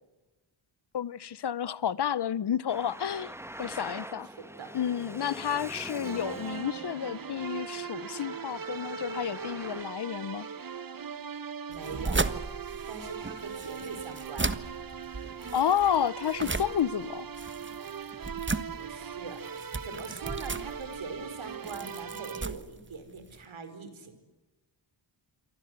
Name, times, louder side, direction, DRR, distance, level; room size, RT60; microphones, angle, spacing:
voice 1, 0.9-3.3 3.6-4.3 4.7-10.5 15.5-17.3, left 9 dB, 60° left, 0.8 m, -30 dB
Traffic noise roadway noise, 2.7-9.8, right 1 dB, 5° right, 1.3 m, -44 dB
voice 2, 4.2-4.7 11.7-12.2 12.9-14.5 18.1-18.3 18.7-24.1, right 4 dB, 75° right, 5.1 m, -42 dB
sound 1, 6.0-22.5, right 7 dB, 45° right, 1.1 m, -40 dB
sound 2, 11.7-23.4, right 3 dB, 25° right, 1.4 m, -36 dB
28.0 x 24.0 x 8.1 m
wide cardioid pair, 90°, 47 cm